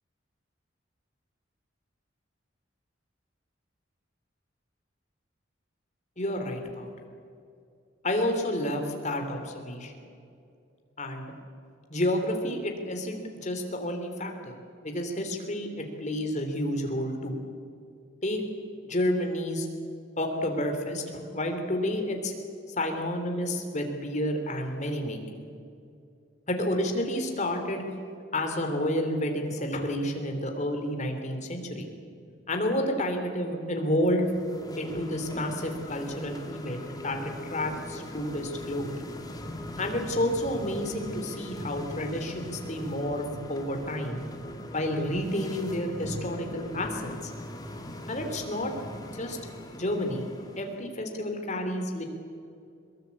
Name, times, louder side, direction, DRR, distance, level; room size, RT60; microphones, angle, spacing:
voice 1, 6.2-6.9 8.0-10.0 11.0-11.3 11.9-14.5 14.8-17.4 18.2-18.4 18.8-19.7 20.2-22.3 22.7-25.4 26.5-27.8 28.3-31.9 32.5-34.3 34.8-39.0 39.8-44.2 44.7-47.3 48.1-48.7 49.1-49.4 49.7-50.3 50.6-52.1, left 1 dB, 35° left, 4 dB, 3.3 m, -30 dB
sound 1, 34.2-50.8, left 1 dB, 20° left, 2.2 m, -40 dB
22.5 x 21.5 x 8.6 m, 2.5 s
head